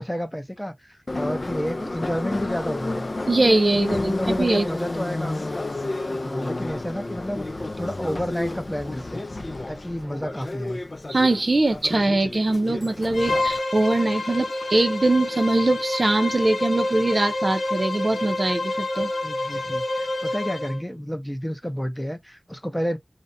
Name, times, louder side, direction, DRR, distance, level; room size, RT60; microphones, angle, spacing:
voice 1, 0.0-3.1 3.7-5.5 6.2-7.5 7.8-9.3 9.7-10.8 19.2-23.0, equal, 5° left, 0.6 m, -30 dB
Subway metro underground, 1.1-13.6, left 2 dB, 45° left, 0.3 m, -31 dB
voice 2, 3.3-4.6 11.1-19.1, right 2 dB, 50° right, 0.6 m, -22 dB
Bowed string instrument, 13.1-20.8, left 2 dB, 85° left, 0.7 m, -28 dB
2.4 x 2.1 x 2.6 m
wide cardioid pair, 55°, 0 cm